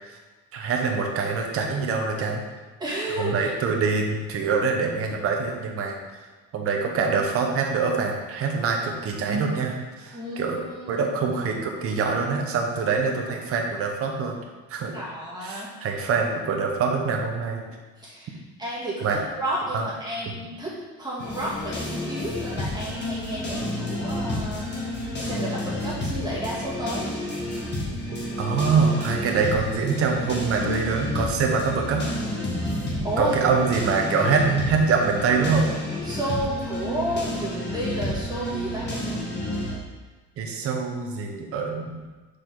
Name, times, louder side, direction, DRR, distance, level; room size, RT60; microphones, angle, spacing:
voice 1, 0.5-2.4 3.2-6.0 6.5-10.6 10.9-14.4 14.7-14.9 15.4-17.8 19.0-19.2 19.7-19.9 28.4-32.0 33.2-35.7 40.4-42.0, right 5 dB, 45° right, 2 dB, 1.0 m, -24 dB
voice 2, 2.8-3.5 10.1-11.1 14.9-15.7 18.0-27.1 33.0-33.3 36.0-38.9, equal, 10° right, -6 dB, 1.9 m, -32 dB
sound 1, 21.2-39.8, left 1 dB, 30° left, 1.5 m, -30 dB
6.5 x 4.9 x 4.0 m, 1.3 s
cardioid pair, 150°, 33 cm